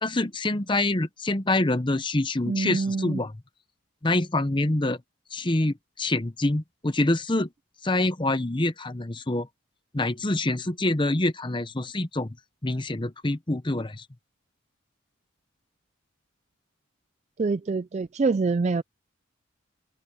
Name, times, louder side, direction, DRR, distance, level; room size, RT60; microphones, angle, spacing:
voice 1, 0.0-3.3 4.0-5.0 5.3-7.5 7.8-9.5 9.9-12.4 12.6-14.1, left 2 dB, 20° left, 0.8 m, -26 dB
voice 2, 2.5-3.2 17.4-18.8, right 4 dB, 30° right, 0.3 m, -25 dB
open air
head